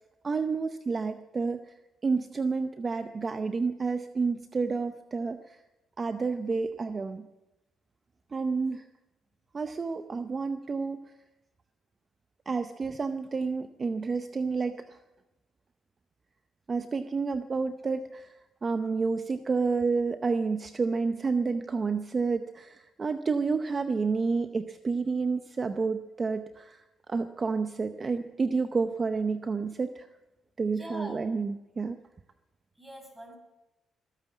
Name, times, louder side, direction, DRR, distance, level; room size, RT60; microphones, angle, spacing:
voice 1, 0.2-1.7 2.0-5.6 6.0-7.3 8.3-8.8 9.5-11.0 12.5-15.0 16.7-26.8 27.1-30.1 30.6-32.0, right 4 dB, 35° right, 9 dB, 0.7 m, -30 dB
voice 2, 30.7-31.2 32.7-33.4, equal, 5° right, 1 dB, 6.5 m, -42 dB
21.0 x 9.2 x 7.2 m, 0.99 s
cardioid pair, 90°, 0 cm